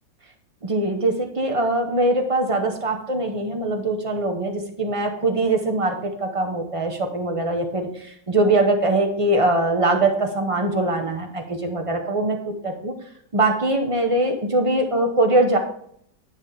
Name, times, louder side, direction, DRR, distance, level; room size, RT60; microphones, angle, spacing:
voice 1, 0.6-12.9 13.3-15.6, right 2 dB, 45° right, 3 dB, 0.4 m, -22 dB
10.0 x 3.5 x 5.6 m, 0.67 s
omnidirectional pair, 1.9 m